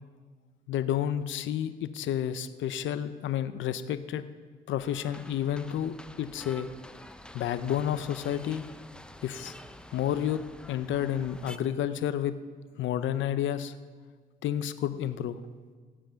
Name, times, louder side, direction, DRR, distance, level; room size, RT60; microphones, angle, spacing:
voice 1, 0.7-4.2 4.7-6.7 7.3-8.6 9.2-9.5 9.9-10.4 10.7-12.3 12.8-13.7 14.4-15.4, left 10 dB, 75° left, 12 dB, 0.6 m, -30 dB
sound 1, 4.8-11.6, left 1 dB, 5° left, 0.6 m, -48 dB
17.5 x 7.7 x 5.8 m, 1.5 s
cardioid pair, 90°, 20 cm